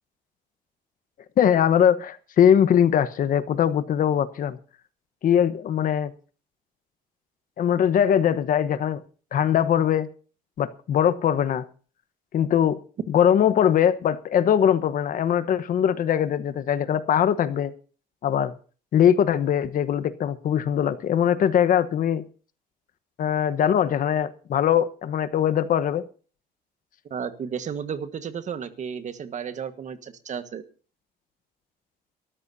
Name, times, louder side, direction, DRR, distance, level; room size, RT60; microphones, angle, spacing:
voice 1, 1.4-4.6 5.2-6.1 7.6-9.0 9.3-10.1 10.6-11.7 12.3-12.8 13.1-17.7 18.2-18.5 18.9-22.2 23.2-26.0, left 9 dB, 55° left, 1.1 m, -21 dB
voice 2, 27.1-30.6, right 7 dB, 45° right, 1.5 m, -33 dB
23.0 x 13.5 x 2.8 m
cardioid pair, 110°, 17 cm